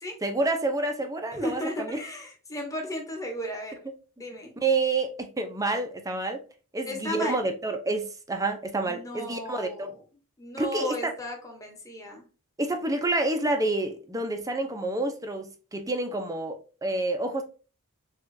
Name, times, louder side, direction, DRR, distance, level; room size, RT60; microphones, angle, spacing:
voice 1, 0.2-2.0 4.6-6.4 6.7-9.9 10.6-11.0 12.6-17.4, right 2 dB, 15° right, 0.6 m, -28 dB
voice 2, 1.3-3.8 4.2-4.5 6.9-7.4 8.8-10.0 10.4-12.2, left 1 dB, 15° left, 1.1 m, -35 dB
6.7 x 2.4 x 2.6 m
head